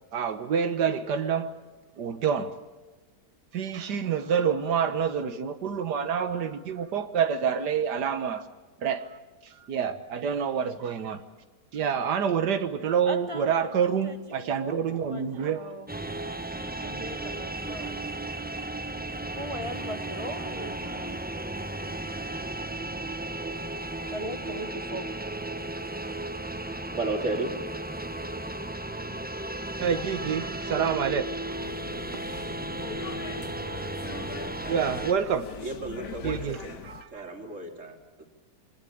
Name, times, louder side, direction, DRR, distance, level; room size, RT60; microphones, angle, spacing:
voice 1, 0.1-1.5 2.0-2.6 3.5-8.4 8.8-9.2 9.7-11.2 11.7-15.7 29.8-31.3 31.6-31.7 32.3-32.5 33.8-33.9 34.7-35.5 36.2-37.2, right 7 dB, 85° right, 1.8 m, -27 dB
voice 2, 13.0-15.9 16.7-18.0 19.3-21.2 23.7-25.1, equal, 20° left, 1.0 m, -39 dB
sound 1, 15.9-35.1, right 2 dB, 10° right, 0.6 m, -35 dB
voice 3, 26.9-27.6 35.6-36.8 37.1-38.3, right 2 dB, 45° right, 3.3 m, -34 dB
sound 2, 31.6-37.0, left 6 dB, 70° left, 1.7 m, -41 dB
24.5 x 19.0 x 8.6 m
omnidirectional pair, 1.7 m